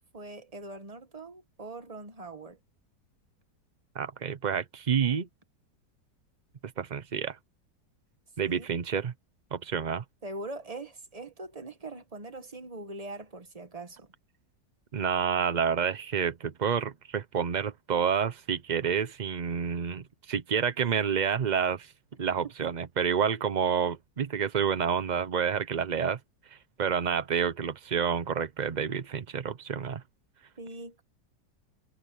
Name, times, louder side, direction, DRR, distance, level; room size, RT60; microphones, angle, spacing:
voice 1, 0.1-2.6 8.4-8.7 10.2-14.1 22.6-22.7 30.6-31.0, right 2 dB, 25° right, 1.3 m, -42 dB
voice 2, 3.9-5.3 6.8-7.4 8.4-9.1 9.5-10.0 14.9-21.9 22.2-26.2 26.8-30.0, right 7 dB, 80° right, 0.4 m, -29 dB
omnidirectional pair, 1.9 m